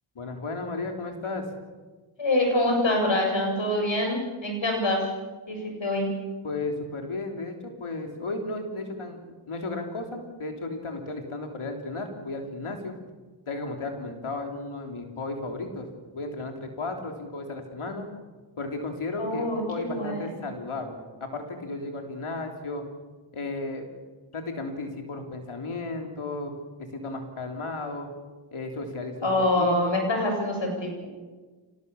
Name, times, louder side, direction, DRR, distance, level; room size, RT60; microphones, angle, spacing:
voice 1, 0.2-1.5 6.4-9.2 9.5-12.9 13.5-15.9 16.1-18.1 18.6-22.8 23.3-23.9 24.3-26.5 26.9-28.1 28.5-30.0, left 2 dB, 85° left, 3 dB, 3.4 m, -34 dB
voice 2, 2.2-5.1 5.5-6.1 19.2-20.3 29.2-31.1, left 1 dB, 65° left, 2 dB, 7.9 m, -25 dB
25.5 x 19.0 x 7.1 m, 1.3 s
cardioid pair, 45°, 49 cm